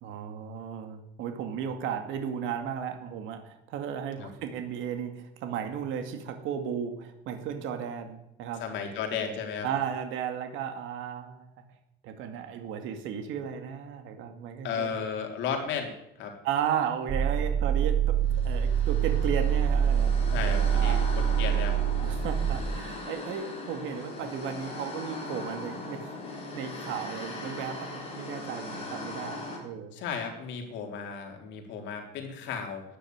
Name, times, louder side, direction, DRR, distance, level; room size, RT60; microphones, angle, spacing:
voice 1, 0.0-8.6 9.6-11.5 12.0-14.9 16.4-20.2 20.4-21.0 22.0-26.2 26.5-29.9, right 8 dB, 75° right, 6 dB, 2.3 m, -35 dB
voice 2, 8.6-9.7 14.6-15.9 16.2-16.3 20.3-21.8 29.9-32.8, left 6 dB, 65° left, 3 dB, 3.6 m, -34 dB
sound 1, 17.1-22.5, right 8 dB, 35° right, 4.3 m, -25 dB
sound 2, 18.3-29.6, left 2 dB, 30° left, 4.3 m, -39 dB
13.5 x 9.9 x 9.5 m, 0.87 s
cardioid pair, 175°, 20 cm